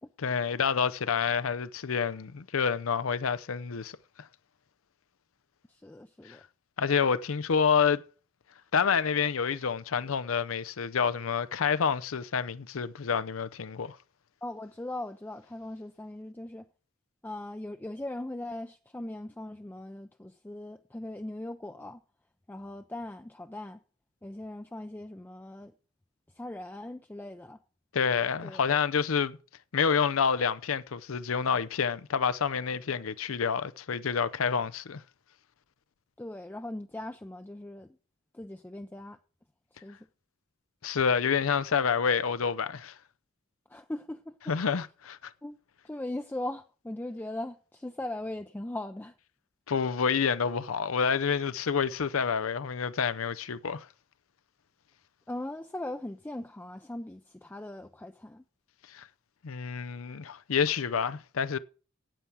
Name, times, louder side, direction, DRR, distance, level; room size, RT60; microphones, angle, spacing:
voice 1, 0.2-3.9 6.3-6.4 6.8-8.0 8.7-14.0 27.9-29.4 29.7-35.0 40.8-42.9 44.5-45.3 49.7-53.9 58.9-59.1 59.4-61.6, left 6 dB, 90° left, 0.6 m, -28 dB
voice 2, 5.7-6.4 14.4-16.7 17.2-22.0 22.5-23.8 24.2-25.7 26.3-27.6 28.4-28.6 36.2-38.0 38.3-39.2 39.7-40.1 43.7-44.5 45.4-45.6 45.8-49.2 55.3-58.4, left 1 dB, 10° left, 0.4 m, -39 dB
9.1 x 8.4 x 6.1 m
head